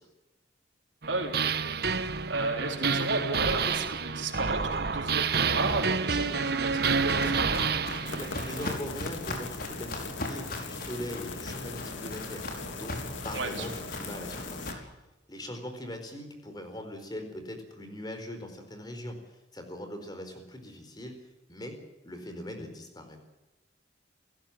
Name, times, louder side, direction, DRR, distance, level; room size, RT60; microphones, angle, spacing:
sound 1, 1.0-8.7, right 5 dB, 55° right, 1.2 m, -29 dB
voice 1, 1.1-1.6 2.3-7.7 13.3-13.7, right 2 dB, 80° right, 0 dB, 4.0 m, -33 dB
Walk footsteps, 6.3-14.7, left 1 dB, 50° left, 5.3 m, -39 dB
sound 2, 8.1-14.7, left 5 dB, 85° left, 2.4 m, -41 dB
voice 2, 8.1-13.0 13.2-14.7 15.3-21.1 21.5-21.8 22.0-23.2, left 1 dB, 20° left, 6 dB, 4.5 m, -41 dB
29.0 x 16.5 x 7.6 m, 1.1 s
head